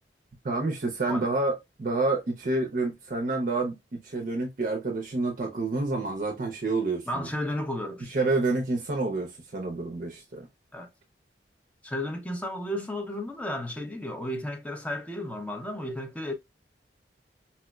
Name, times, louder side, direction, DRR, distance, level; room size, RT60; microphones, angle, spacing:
voice 1, 0.4-7.3 8.1-10.5, right 2 dB, 50° right, 0.5 m, -28 dB
voice 2, 7.1-8.2 10.7-10.9 11.8-16.3, left 1 dB, 10° left, 0.5 m, -33 dB
4.2 x 2.0 x 2.2 m
head